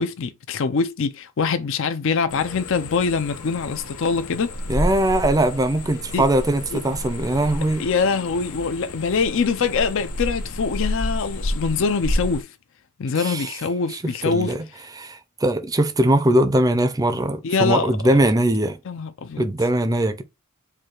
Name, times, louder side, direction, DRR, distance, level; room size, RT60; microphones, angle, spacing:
voice 1, 0.0-4.5 6.1-6.2 6.7-6.8 7.8-12.5 13.0-14.5 17.4-17.9 18.9-19.4, left 5 dB, 60° left, 0.5 m, -24 dB
sound 1, 2.3-12.4, left 1 dB, 85° left, 1.0 m, -30 dB
voice 2, 4.7-7.9 13.2-13.5 13.9-14.7 15.0-18.8 19.4-20.2, right 1 dB, 15° right, 0.5 m, -21 dB
4.8 x 2.3 x 4.4 m
head